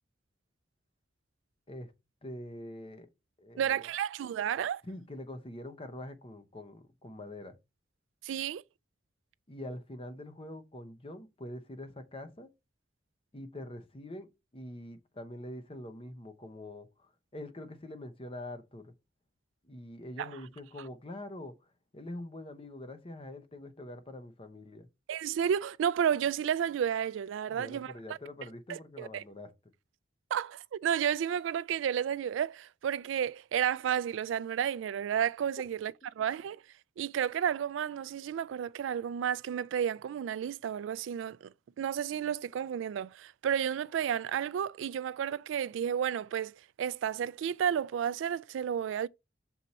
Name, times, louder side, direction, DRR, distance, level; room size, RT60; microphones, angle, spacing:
voice 1, 2.2-3.1 3.4-3.9 4.8-7.6 9.5-12.5 13.3-18.9 19.6-21.5 21.9-24.9 27.5-29.5, left 1 dB, 30° left, 0.8 m, -44 dB
voice 2, 3.6-4.8 8.2-8.6 20.2-20.3 25.1-27.9 28.7-29.2 30.3-36.6 37.0-49.1, right 8 dB, 80° right, 0.3 m, -32 dB
6.3 x 4.2 x 4.0 m
head